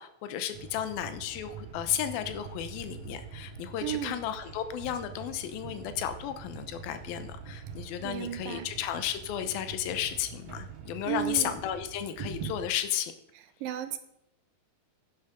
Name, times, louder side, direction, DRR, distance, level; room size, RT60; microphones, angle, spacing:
voice 1, 0.0-13.1, left 10 dB, 85° left, 10 dB, 2.7 m, -33 dB
sound 1, 0.5-12.7, right 6 dB, 55° right, 2.1 m, -44 dB
voice 2, 3.8-4.2 8.0-8.7 11.1-11.5 13.6-14.0, right 12 dB, 75° right, 10 dB, 2.5 m, -33 dB
10.0 x 9.5 x 5.1 m, 0.77 s
omnidirectional pair, 4.2 m